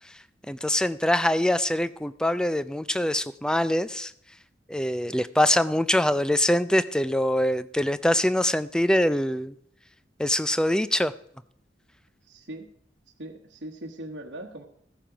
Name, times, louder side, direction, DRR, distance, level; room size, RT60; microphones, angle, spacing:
voice 1, 0.5-4.1 4.7-9.5 10.2-11.1, left 1 dB, 5° left, 14 dB, 0.4 m, -24 dB
voice 2, 12.2-12.7 13.1-14.6, right 1 dB, 65° right, -1 dB, 1.2 m, -40 dB
14.5 x 7.4 x 5.0 m, 0.69 s
head